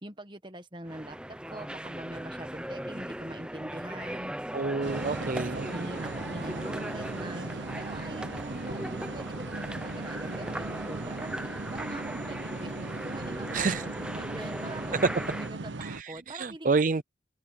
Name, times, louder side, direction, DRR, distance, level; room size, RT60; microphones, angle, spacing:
voice 1, 0.0-4.3 5.1-16.8, right 1 dB, 25° right, 1.6 m, -43 dB
sound 1, 0.9-15.5, right 1 dB, 5° right, 0.9 m, -38 dB
voice 2, 4.5-5.6 13.5-13.8 15.8-17.0, right 4 dB, 45° right, 0.5 m, -29 dB
sound 2, 4.8-16.0, right 3 dB, 75° right, 0.9 m, -38 dB
open air
head